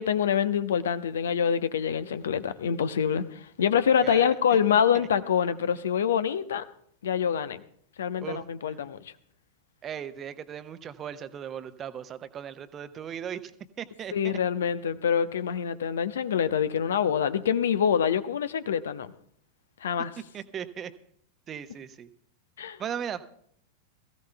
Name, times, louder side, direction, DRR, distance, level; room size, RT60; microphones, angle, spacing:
voice 1, 0.0-6.6 7.0-7.6 8.0-9.0 14.1-19.1 19.8-20.1 22.6-22.8, left 8 dB, 65° left, 0.8 m, -25 dB
voice 2, 4.0-4.6 4.9-5.1 8.2-8.8 9.8-13.5 13.8-14.4 20.3-20.9 21.5-22.1 22.8-23.3, right 8 dB, 25° right, 0.9 m, -38 dB
21.5 x 15.0 x 2.3 m
figure-of-eight pair, 90°, 0 cm